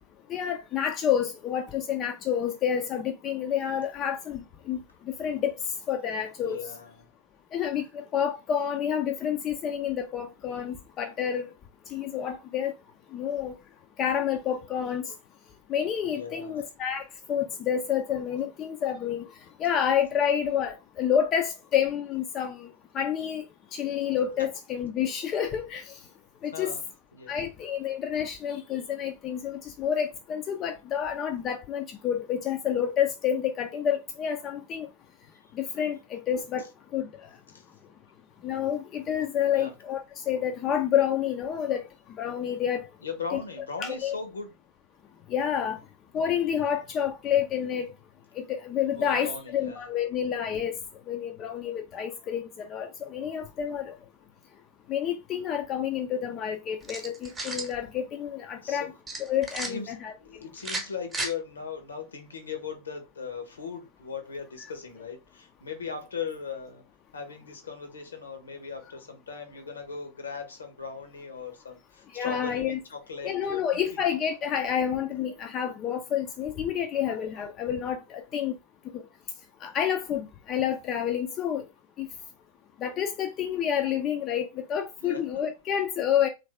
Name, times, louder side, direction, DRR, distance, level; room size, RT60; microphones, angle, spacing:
voice 1, 0.3-4.8 5.1-5.5 5.9-6.6 7.5-11.4 11.9-12.7 13.1-13.5 14.0-15.1 15.7-17.0 17.3-19.2 19.6-22.7 22.9-23.4 23.7-25.9 26.4-26.7 27.3-34.9 35.5-36.7 36.9-37.1 38.4-41.8 42.2-42.9 43.3-43.4 43.8-44.1 45.3-45.8 46.1-47.9 48.4-50.7 51.1-53.9 54.9-58.9 59.2-60.1 72.1-72.8 73.2-78.5 79.6-81.6 82.0-82.1 82.8-86.3, left 9 dB, 30° left, 0.4 m, -29 dB
voice 2, 6.4-7.1 16.1-16.6 26.5-26.8 27.1-27.5 37.5-37.6 39.5-39.7 43.0-44.5 49.0-49.9 58.6-58.9 59.7-59.9 60.2-66.8 67.1-74.0 85.0-85.2, left 5 dB, 70° left, 0.9 m, -38 dB
sound 1, 56.8-57.7 59.1-59.7 60.6-61.3, right 2 dB, 15° right, 0.9 m, -34 dB
3.1 x 2.6 x 3.3 m
figure-of-eight pair, 90°, 0 cm